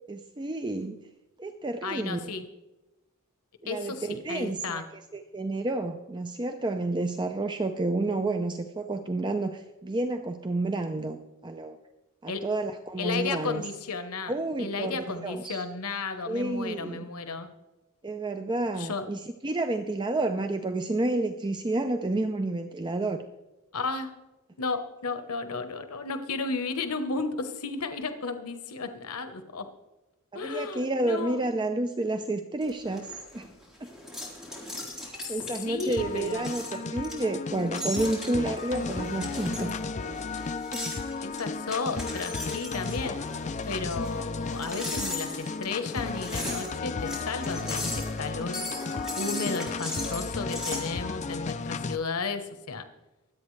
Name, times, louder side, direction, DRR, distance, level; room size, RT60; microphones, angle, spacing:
voice 1, 0.1-1.0 1.4-2.2 3.6-4.8 5.1-11.2 11.4-11.8 12.2-13.6 14.3-15.6 16.3-17.1 18.0-23.2 30.3-33.5 35.0-39.8, right 2 dB, 20° right, 6 dB, 0.5 m, -30 dB
voice 2, 1.8-2.4 3.7-4.9 12.3-12.4 13.0-14.3 14.6-17.5 18.8-19.0 23.7-24.1 24.6-29.7 30.3-31.4 35.2-35.3 35.6-36.5 41.2-43.2 43.7-48.6 49.2-52.8, left 4 dB, 90° left, 8 dB, 1.1 m, -33 dB
sound 1, 32.6-50.9, left 1 dB, 5° right, 3.8 m, -38 dB
sound 2, 36.0-52.0, left 4 dB, 35° left, 0.5 m, -34 dB
24.5 x 8.4 x 3.2 m, 1.0 s
head